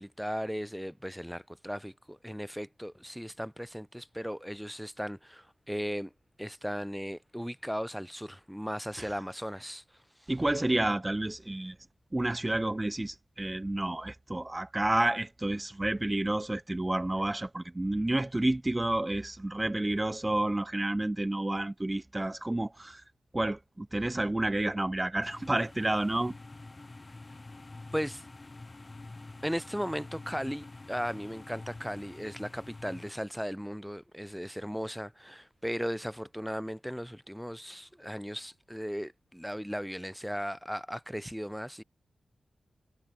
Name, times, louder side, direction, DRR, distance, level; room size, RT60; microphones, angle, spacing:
voice 1, 0.0-6.1 6.4-9.8 27.9-28.2 29.4-41.8, equal, ahead, 1.4 m, -37 dB
voice 2, 10.3-11.8 12.1-23.0 23.3-26.3, right 1 dB, 15° right, 0.6 m, -30 dB
sound 1, 25.2-33.1, left 2 dB, 30° left, 1.8 m, -47 dB
wide cardioid pair, 95°, 0 cm